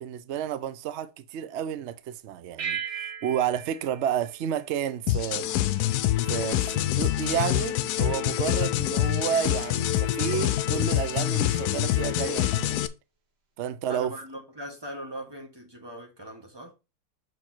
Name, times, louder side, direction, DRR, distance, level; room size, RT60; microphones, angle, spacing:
voice 1, 0.0-5.5 6.3-12.8 13.6-14.1, right 9 dB, 65° right, 0.7 m, -31 dB
sound 1, 2.6-5.3, right 8 dB, 85° right, 2.3 m, -37 dB
sound 2, 5.1-12.9, left 13 dB, 75° left, 1.1 m, -26 dB
voice 2, 13.9-16.7, equal, 15° right, 1.6 m, -40 dB
6.4 x 4.6 x 4.3 m
omnidirectional pair, 1.7 m